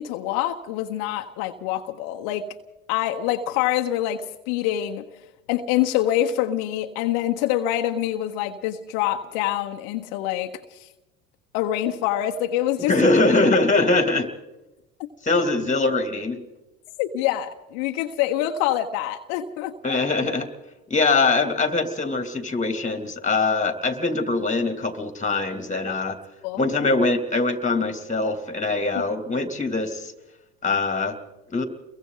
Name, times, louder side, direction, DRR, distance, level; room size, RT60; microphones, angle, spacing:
voice 1, 0.0-2.5 2.9-5.1 5.5-10.9 11.5-13.1 17.0-20.0 25.9-26.1 26.4-26.7, left 12 dB, 65° left, 5 dB, 1.3 m, -25 dB
voice 2, 12.9-14.3 15.2-16.4 19.8-20.5 20.9-26.2 26.6-30.1 30.6-31.2 31.5-31.6, left 3 dB, 15° left, 7 dB, 2.8 m, -22 dB
29.5 x 22.5 x 4.0 m, 1.0 s
hypercardioid pair, 75°, 41 cm